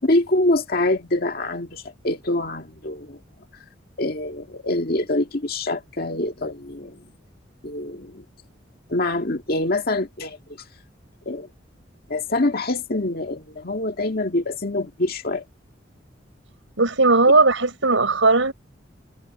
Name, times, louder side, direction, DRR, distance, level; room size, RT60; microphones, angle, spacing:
voice 1, 0.0-3.2 4.0-7.0 7.6-8.2 8.9-10.4 11.3-11.5 12.1-15.4, left 2 dB, 50° left, 1.9 m, -25 dB
voice 2, 16.8-18.5, right 3 dB, 90° right, 5.1 m, -17 dB
head